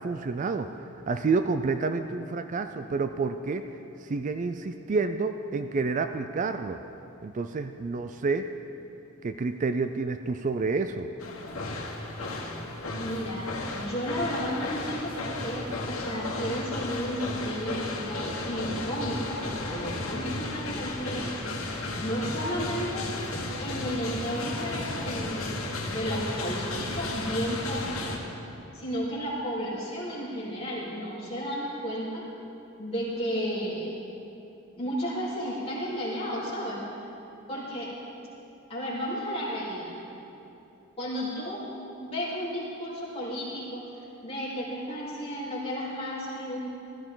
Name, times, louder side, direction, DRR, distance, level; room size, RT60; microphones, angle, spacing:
voice 1, 0.0-3.7 4.0-6.8 7.2-8.5 9.2-11.1 21.7-21.9, right 4 dB, 35° right, 8 dB, 0.4 m, -29 dB
sound 1, 11.2-28.2, left 2 dB, 85° left, 1.6 m, -34 dB
voice 2, 13.0-21.3 22.0-23.1 23.6-28.3 28.7-32.2 32.8-34.0 34.8-36.8 37.5-37.9 38.7-39.9 41.0-41.6 42.0-43.9 44.2-46.6, equal, 30° left, -8 dB, 3.6 m, -33 dB
15.0 x 14.0 x 3.9 m, 2.9 s
head